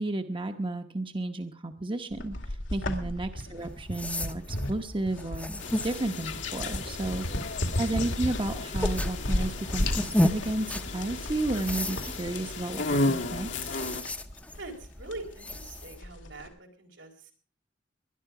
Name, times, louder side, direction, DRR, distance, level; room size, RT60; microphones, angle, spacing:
voice 1, 0.0-5.5 5.8-7.3 7.7-13.7, right 2 dB, 30° right, 7 dB, 1.0 m, -32 dB
sound 1, 2.1-16.5, left 1 dB, 90° left, 2.4 m, -35 dB
sound 2, 3.6-16.0, left 1 dB, 10° left, 0.8 m, -35 dB
sound 3, 5.6-14.0, left 3 dB, 75° left, 1.7 m, -34 dB
voice 2, 14.6-17.3, right 2 dB, 90° right, 2 dB, 4.1 m, -44 dB
20.5 x 11.5 x 4.8 m, 0.39 s
head